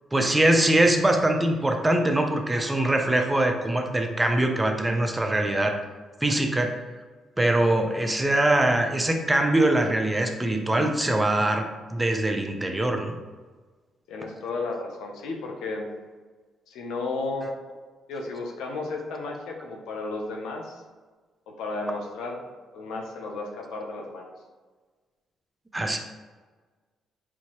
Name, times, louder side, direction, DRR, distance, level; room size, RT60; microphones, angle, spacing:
voice 1, 0.1-5.7 6.2-6.8 7.4-13.2 17.4-17.5 25.7-26.0, right 1 dB, 15° right, 3 dB, 0.5 m, -23 dB
voice 2, 14.1-15.9 16.7-17.5 18.1-20.8 21.5-22.4 22.7-24.3, left 3 dB, 90° left, 2 dB, 0.6 m, -33 dB
4.5 x 2.7 x 2.9 m, 1.4 s
cardioid pair, 90°, 0 cm